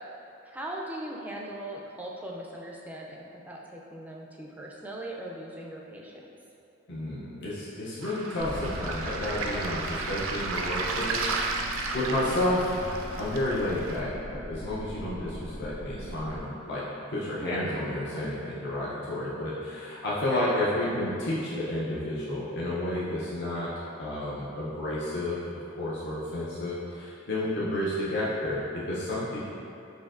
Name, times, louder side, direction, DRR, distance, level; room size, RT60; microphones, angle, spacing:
voice 1, 0.5-6.3 17.4-17.7 20.3-21.0 27.5-27.7, right 1 dB, 10° right, -2 dB, 0.3 m, -39 dB
voice 2, 6.9-16.8 17.1-23.7 24.0-25.4 25.8-29.5, left 1 dB, 60° left, -8 dB, 0.6 m, -31 dB
Waves surf, 8.0-14.0, right 3 dB, 80° right, 0.4 m, -33 dB
sound 1, 8.4-16.4, equal, 80° left, 1.2 m, -40 dB
6.2 x 2.6 x 2.5 m, 2.9 s
head